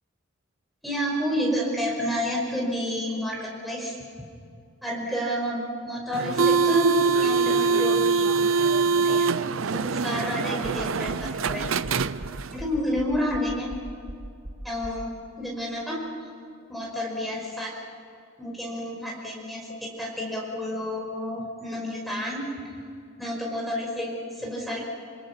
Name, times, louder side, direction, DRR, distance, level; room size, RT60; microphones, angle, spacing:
voice 1, 0.8-4.0 4.8-8.3 9.0-9.3 9.7-11.7 12.5-13.7 14.6-15.1 15.4-16.0 16.7-17.7 18.4-22.4 23.2-24.8, equal, ahead, -3 dB, 5.4 m, -30 dB
sound 1, 6.1-12.6, right 4 dB, 80° right, 0.6 m, -23 dB
sound 2, 10.6-15.1, right 1 dB, 25° right, 1.5 m, -39 dB
27.0 x 27.0 x 5.9 m, 2.3 s
head